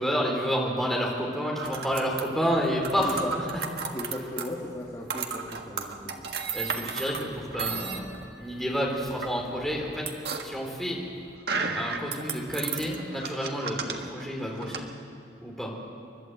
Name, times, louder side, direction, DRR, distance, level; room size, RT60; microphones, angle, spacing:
voice 1, 0.0-3.4 6.5-8.1 8.4-10.1 10.4-11.0 11.8-14.9 15.4-15.7, equal, ahead, -2 dB, 3.7 m, -29 dB
sound 1, 1.6-14.8, right 5 dB, 60° right, 1.6 m, -35 dB
voice 2, 3.0-3.3 3.9-6.4, left 1 dB, 20° left, -4 dB, 2.1 m, -37 dB
29.5 x 12.0 x 8.0 m, 2.8 s
head